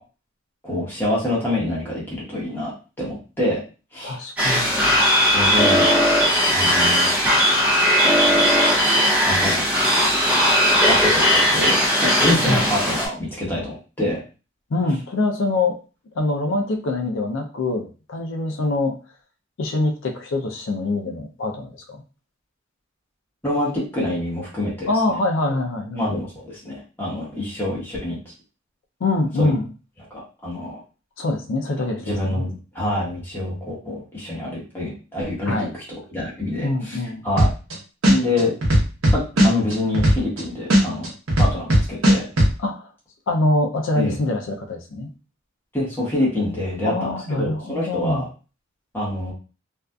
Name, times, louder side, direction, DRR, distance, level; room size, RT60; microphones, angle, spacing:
voice 1, 0.6-2.7 3.0-3.6 3.9-4.2 5.3-5.9 6.5-7.2 9.3-9.6 10.8-13.7 14.0-14.2 23.4-24.9 25.9-28.2 29.4-29.5 30.1-30.8 32.1-32.5 32.7-35.8 36.1-37.0 37.2-37.5 38.1-38.5 39.1-41.1 41.4-42.3 43.9-44.1 45.7-47.1 47.4-48.3 48.9-49.3, left 1 dB, 10° left, -6 dB, 1.1 m, -26 dB
voice 2, 4.0-4.9 12.4-12.7 14.7-15.8 16.2-19.0 19.6-22.0 24.9-26.2 29.0-29.7 31.2-32.4 35.4-35.7 36.6-37.2 42.6-42.9 43.3-45.1 46.8-48.2, left 2 dB, 65° left, 3 dB, 0.4 m, -24 dB
sound 1, 4.4-13.1, equal, 10° right, 0.7 m, -18 dB
sound 2, 37.4-37.7 38.0-40.4 40.7-42.5, equal, 70° right, 0.8 m, -15 dB
2.6 x 2.3 x 2.2 m, 0.34 s
head